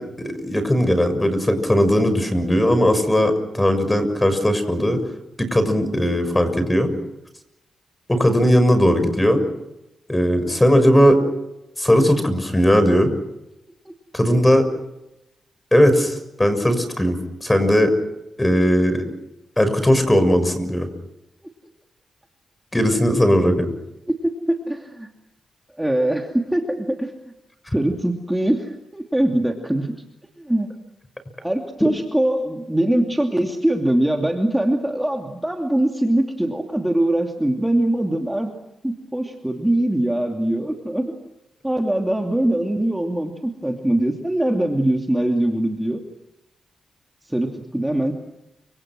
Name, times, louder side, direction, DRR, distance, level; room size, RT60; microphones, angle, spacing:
voice 1, 0.0-5.0 5.4-6.9 8.1-9.4 10.1-11.2 11.8-13.1 14.1-14.7 15.7-17.9 18.4-19.0 19.6-20.9 22.7-23.7, equal, 15° left, 10 dB, 6.5 m, -18 dB
voice 2, 24.1-25.1 25.8-27.1 27.7-29.9 30.4-30.7 31.4-38.5 38.8-41.1 41.6-46.0 47.2-48.1, right 1 dB, 10° right, 2 dB, 2.8 m, -22 dB
29.5 x 26.5 x 6.3 m, 0.91 s
cardioid pair, 75°, 0 cm